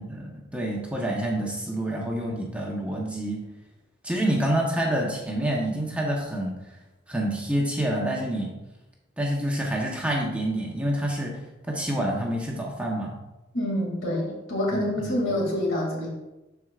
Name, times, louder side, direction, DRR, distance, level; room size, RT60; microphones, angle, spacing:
voice 1, 0.0-3.4 4.0-6.5 7.1-8.5 9.2-11.3 11.7-13.2 14.7-15.1, right 1 dB, 5° right, -2 dB, 1.0 m, -27 dB
voice 2, 13.5-16.1, left 1 dB, 70° left, -2 dB, 2.5 m, -27 dB
12.5 x 4.6 x 2.5 m, 1.0 s
head